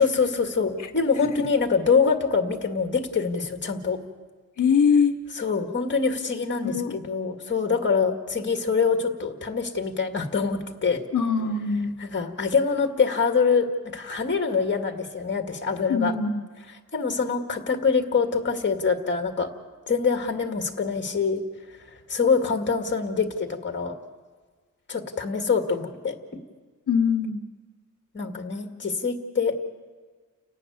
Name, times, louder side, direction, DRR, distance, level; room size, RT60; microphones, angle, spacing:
voice 1, 0.0-4.0 5.3-11.0 12.0-13.7 13.9-16.1 16.9-19.5 19.9-21.4 22.1-24.0 24.9-26.2 28.1-29.6, left 5 dB, 35° left, 5 dB, 1.8 m, -24 dB
voice 2, 4.6-5.2 6.6-6.9 11.1-12.0 15.9-16.5 26.9-27.4, left 6 dB, 65° left, 6 dB, 0.9 m, -22 dB
30.0 x 11.5 x 9.3 m, 1.4 s
wide cardioid pair, 175°, 31 cm